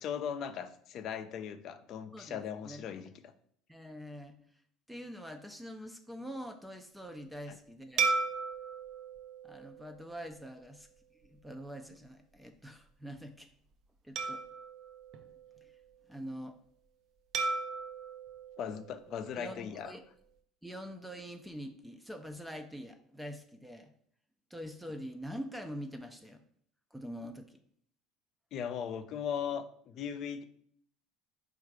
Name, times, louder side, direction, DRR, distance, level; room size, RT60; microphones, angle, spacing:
voice 1, 0.0-3.3 7.5-7.6 18.6-19.9 28.5-30.4, left 8 dB, 55° left, 10 dB, 0.4 m, -38 dB
voice 2, 2.1-3.0 3.7-4.4 4.9-8.1 9.4-10.9 11.1-13.5 14.0-14.4 16.1-16.6 19.4-20.0 20.6-23.9 24.5-26.4 26.9-27.6, equal, 5° right, 6 dB, 0.4 m, -44 dB
sound 1, 8.0-10.7 11.2-11.4 14.2-15.9 17.3-19.6, right 4 dB, 60° right, 0.6 m, -36 dB
4.4 x 2.5 x 4.6 m, 0.62 s
supercardioid pair, 95°, 0 cm